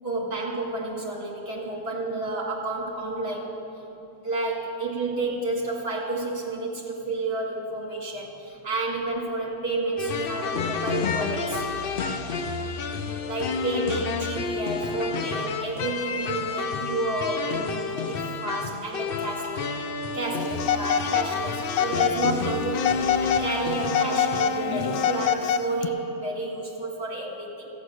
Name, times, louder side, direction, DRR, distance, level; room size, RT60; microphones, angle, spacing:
voice 1, 0.0-3.6 4.2-11.6 13.3-19.7 20.1-23.0 23.4-27.7, right 2 dB, 45° right, -2 dB, 2.3 m, -30 dB
sound 1, 10.0-25.3, left 4 dB, 55° left, 0.6 m, -30 dB
Telephone, 20.6-21.3 21.7-22.4 22.8-23.5 23.8-25.9, left 9 dB, 85° left, 1.1 m, -25 dB
14.5 x 8.2 x 6.3 m, 3.0 s
omnidirectional pair, 1.5 m